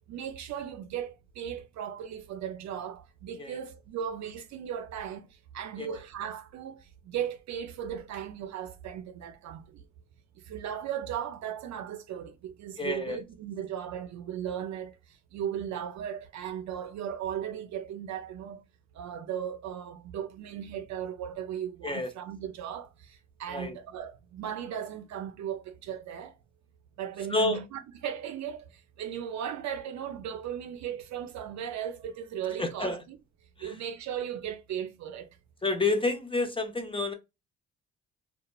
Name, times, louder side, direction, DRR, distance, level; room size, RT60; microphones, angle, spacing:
voice 1, 0.1-5.3 5.5-9.8 10.5-15.0 15.3-18.6 18.9-26.3 27.0-28.7 29.0-33.2 33.6-35.3, right 9 dB, 65° right, 0.4 m, -37 dB
voice 2, 12.8-13.2 21.8-22.1 23.5-23.8 27.3-27.6 32.6-33.0 33.6-33.7 35.6-37.1, left 3 dB, 20° left, 0.5 m, -29 dB
2.8 x 2.2 x 2.3 m
cardioid pair, 90°, 30 cm